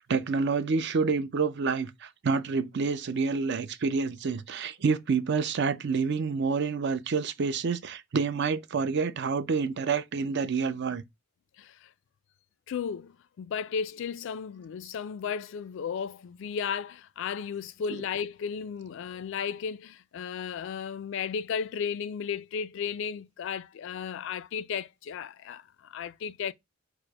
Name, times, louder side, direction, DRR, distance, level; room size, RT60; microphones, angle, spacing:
voice 1, 0.1-11.0, right 5 dB, 55° right, 0.5 m, -28 dB
voice 2, 11.6-11.9 12.7-26.5, left 7 dB, 60° left, 0.3 m, -34 dB
4.8 x 2.0 x 4.6 m
head